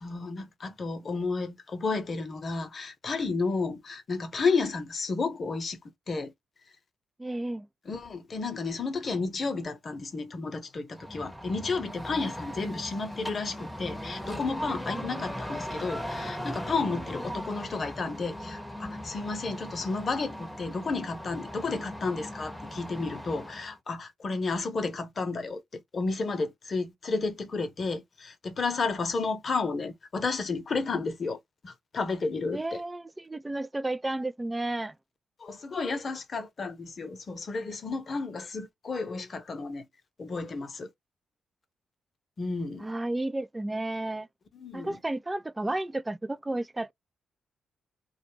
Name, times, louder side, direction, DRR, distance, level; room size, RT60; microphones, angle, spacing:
voice 1, 0.0-5.8 6.1-6.3 7.8-25.6 25.9-32.8 35.4-39.9 40.2-40.9 42.4-42.9 44.5-45.0, left 4 dB, 50° left, 0.8 m, -32 dB
voice 2, 7.2-7.7 14.9-15.1 32.5-34.9 42.8-44.3 44.7-46.9, right 2 dB, 20° right, 0.4 m, -32 dB
sound 1, 10.9-23.7, equal, ahead, 0.9 m, -38 dB
2.4 x 2.3 x 3.0 m
hypercardioid pair, 40°, 0 cm